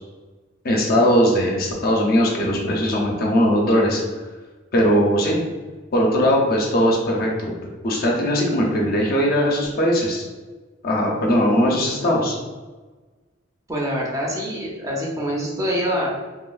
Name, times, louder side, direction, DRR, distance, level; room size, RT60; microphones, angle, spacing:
voice 1, 0.6-4.0 4.7-5.4 5.9-7.5 7.8-10.3 10.8-12.4, equal, 50° left, -2 dB, 0.5 m, -19 dB
voice 2, 13.7-16.1, equal, 15° right, -3 dB, 0.5 m, -25 dB
3.0 x 2.3 x 2.3 m, 1.3 s
head